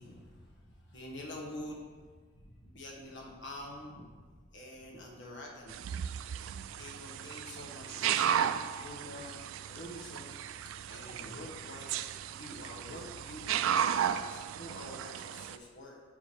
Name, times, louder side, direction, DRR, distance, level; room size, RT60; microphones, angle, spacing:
voice 1, 0.0-6.0 6.8-10.3 10.9-12.0 12.2-16.0, left 1 dB, 65° left, -1 dB, 1.4 m, -47 dB
sound 1, 5.7-15.6, right 9 dB, 90° right, 0.3 m, -34 dB
4.9 x 4.7 x 6.0 m, 1.5 s
head